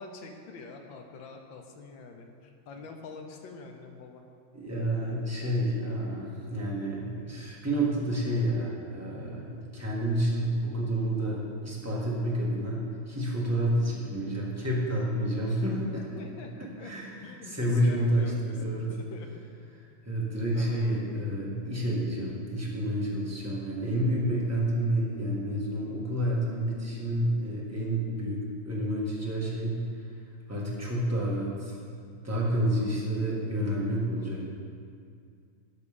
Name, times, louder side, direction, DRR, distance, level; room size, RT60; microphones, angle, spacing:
voice 1, 0.0-4.2 16.1-16.9 17.2-19.5 20.5-21.0, left 3 dB, 70° left, 4 dB, 1.6 m, -45 dB
voice 2, 4.5-16.2 16.8-18.9 20.0-28.4 28.6-30.1 30.5-31.8 32.2-34.5, right 1 dB, 10° right, -5 dB, 1.5 m, -29 dB
12.5 x 5.3 x 5.1 m, 2.3 s
omnidirectional pair, 2.2 m